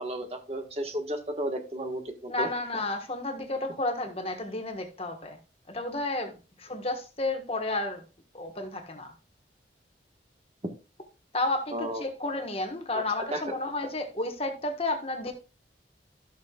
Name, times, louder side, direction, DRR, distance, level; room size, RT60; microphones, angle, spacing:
voice 1, 0.0-2.5 11.7-12.0 12.9-13.0 13.3-13.5, right 1 dB, 35° right, 1.4 m, -33 dB
voice 2, 2.3-5.4 5.7-8.0 8.3-9.1 11.3-15.3, left 2 dB, 30° left, 1.4 m, -32 dB
14.0 x 6.7 x 2.4 m
head